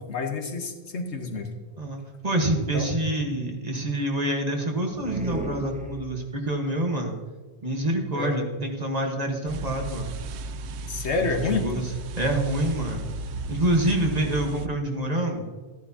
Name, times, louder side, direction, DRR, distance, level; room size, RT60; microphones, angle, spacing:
voice 1, 0.0-1.5 2.7-2.9 8.1-8.5 10.9-11.7, left 4 dB, 80° left, 4 dB, 1.5 m, -28 dB
voice 2, 1.8-7.1 7.6-10.1 11.1-13.1 13.5-15.4, right 1 dB, 35° right, 1 dB, 1.4 m, -27 dB
sound 1, 4.9-6.5, right 1 dB, 5° right, 1.0 m, -34 dB
sound 2, 9.5-14.7, right 2 dB, 80° right, 0.9 m, -35 dB
14.0 x 11.0 x 2.8 m, 1.4 s
omnidirectional pair, 1.1 m